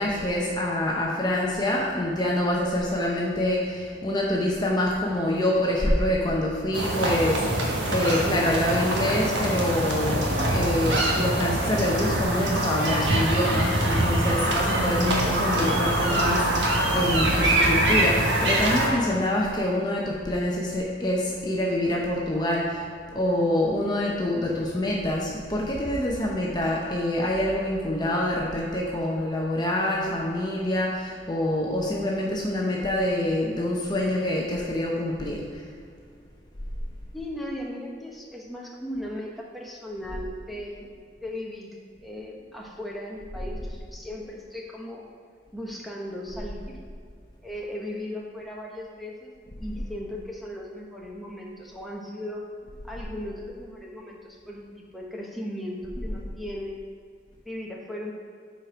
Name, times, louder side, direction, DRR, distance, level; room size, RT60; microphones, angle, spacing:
voice 1, 0.0-22.8 23.1-35.6, left 1 dB, 25° left, -3 dB, 0.7 m, -26 dB
sound 1, 6.7-18.9, right 1 dB, 80° right, 1.4 m, -24 dB
voice 2, 37.1-40.9 41.2-45.1 45.5-46.8 47.4-49.3 49.6-52.4 52.8-56.8 57.4-58.1, left 1 dB, ahead, -3 dB, 0.9 m, -37 dB
8.4 x 4.4 x 5.0 m, 2.2 s
head